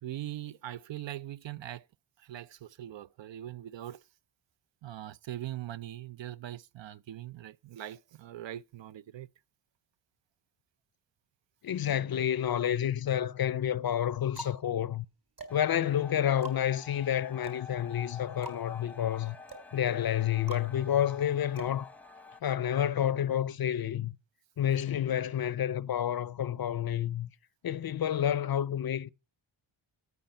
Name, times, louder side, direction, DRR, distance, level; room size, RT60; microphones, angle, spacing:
voice 1, 0.0-1.8 2.2-4.0 4.8-9.3, right 13 dB, 65° right, 0.6 m, -41 dB
voice 2, 11.6-15.1 15.5-19.4 19.7-21.9 22.4-24.1 24.6-27.3 27.6-29.1, left 10 dB, 50° left, 0.5 m, -29 dB
sound 1, 12.4-13.1 13.8-22.5, right 2 dB, 45° right, 3.9 m, -48 dB
sound 2, 15.5-22.4, left 4 dB, 5° left, 0.8 m, -49 dB
13.0 x 8.1 x 5.5 m
cardioid pair, 65°, 48 cm